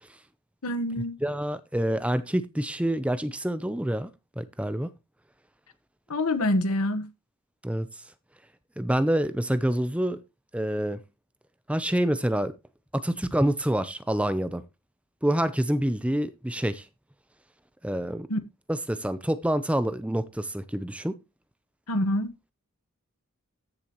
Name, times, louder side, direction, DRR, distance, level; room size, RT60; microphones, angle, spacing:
voice 1, 0.6-1.2 6.1-7.1 18.3-18.4 21.9-22.3, left 1 dB, 85° left, 1.3 m, -26 dB
voice 2, 1.2-4.1 4.4-4.9 7.6-7.9 8.8-10.2 10.5-11.0 11.7-12.5 12.9-14.6 15.2-16.9 17.8-18.3 18.7-21.2, right 1 dB, 5° right, 0.6 m, -27 dB
14.0 x 7.0 x 3.0 m
head